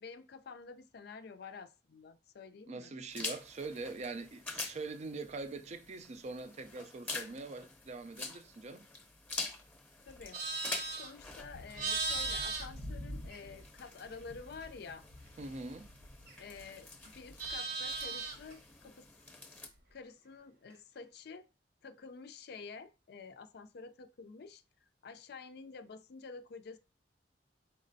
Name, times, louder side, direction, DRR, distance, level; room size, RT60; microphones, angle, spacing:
voice 1, 0.0-2.9 10.1-15.1 16.4-19.1 19.9-21.5 21.8-24.6 25.0-26.8, left 5 dB, 65° left, 0.4 m, -49 dB
voice 2, 2.7-8.9 15.4-15.9, right 3 dB, 40° right, 0.4 m, -43 dB
sound 1, 3.1-19.7, left 3 dB, 10° left, 0.8 m, -47 dB
Livestock farm animals working animals, 10.1-13.8 14.1-16.6 16.9-18.5, right 3 dB, 65° right, 1.0 m, -39 dB
4.3 x 4.2 x 2.6 m
head